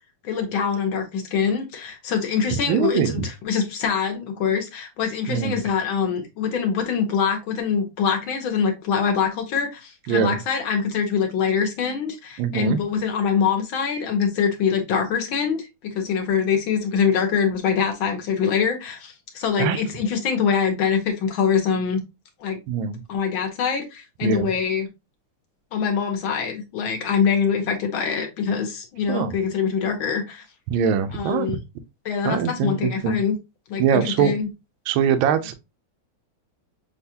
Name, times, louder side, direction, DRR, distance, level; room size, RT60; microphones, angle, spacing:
voice 1, 0.2-22.0 22.4-22.6 23.1-24.9 25.7-30.4 31.1-31.6 32.1-33.4 33.7-34.5, left 6 dB, 65° left, 1.7 m, -24 dB
voice 2, 2.5-3.3 5.3-5.6 10.1-10.4 12.4-12.8 19.6-19.8 22.7-23.0 24.2-24.5 29.1-29.4 30.7-31.6 32.2-33.2 33.8-34.3 34.9-35.5, right 7 dB, 75° right, 1.3 m, -22 dB
6.8 x 2.4 x 2.8 m
omnidirectional pair, 2.4 m